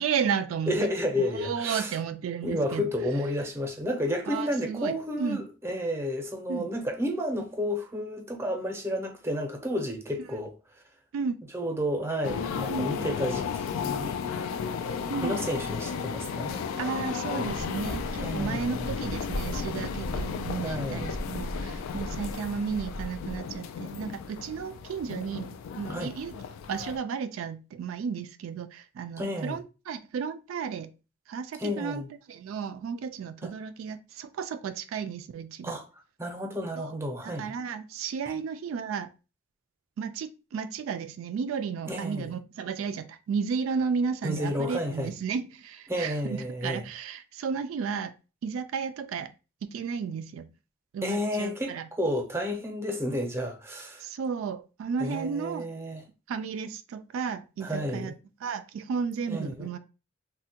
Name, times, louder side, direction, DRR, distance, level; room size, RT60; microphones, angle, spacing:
voice 1, 0.0-0.9 1.3-2.9 4.3-5.4 6.5-6.7 11.1-11.4 12.7-13.1 15.1-15.4 16.7-26.4 26.7-30.9 31.3-32.0 32.3-35.7 36.8-36.9 37.2-39.1 40.0-48.1 48.4-49.3 49.7-50.5 50.9-51.8 54.0-55.7 56.3-58.1 58.4-59.8, right 6 dB, 85° right, 0.3 m, -33 dB
voice 2, 0.7-2.0 2.4-10.5 11.5-14.1 15.2-16.6 18.2-18.9 20.6-21.1 25.9-26.1 29.2-29.6 31.6-32.1 33.4-33.5 35.6-35.8 36.2-37.5 41.9-42.3 44.2-45.1 45.9-46.9 51.0-54.0 55.0-56.0 57.6-58.1 59.3-59.7, equal, 15° right, 0.6 m, -31 dB
sound 1, 12.2-27.0, left 6 dB, 90° left, 0.3 m, -34 dB
Bird, 17.4-23.6, equal, 65° left, 0.8 m, -38 dB
3.2 x 2.2 x 2.7 m
head